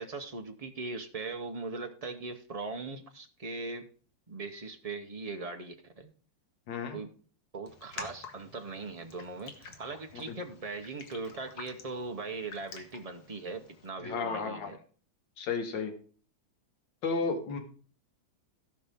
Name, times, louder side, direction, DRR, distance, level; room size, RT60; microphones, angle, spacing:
voice 1, 0.0-3.8 4.3-6.1 6.9-7.1 7.5-14.8, right 3 dB, 45° right, 5 dB, 0.4 m, -40 dB
voice 2, 6.7-7.0 10.3-10.4 14.0-14.7 15.4-15.9 17.0-17.6, left 4 dB, 75° left, 5 dB, 2.1 m, -33 dB
Raindrop, 7.7-13.9, left 5 dB, 55° left, 1.7 m, -49 dB
17.0 x 5.6 x 3.6 m, 0.41 s
omnidirectional pair, 2.1 m